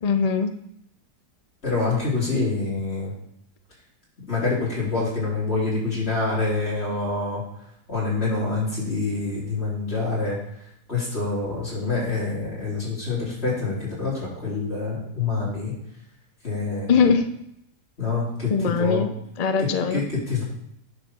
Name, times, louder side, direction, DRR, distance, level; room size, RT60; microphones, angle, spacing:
voice 1, 0.0-0.5 16.9-17.2 18.5-20.0, left 5 dB, 90° left, 7 dB, 0.3 m, -21 dB
voice 2, 1.6-3.1 4.3-7.4 7.9-10.4 10.9-15.7 16.4-16.9 18.0-19.1 19.6-20.4, left 3 dB, 40° left, -7 dB, 4.0 m, -26 dB
9.9 x 4.2 x 6.2 m, 0.74 s
omnidirectional pair, 1.7 m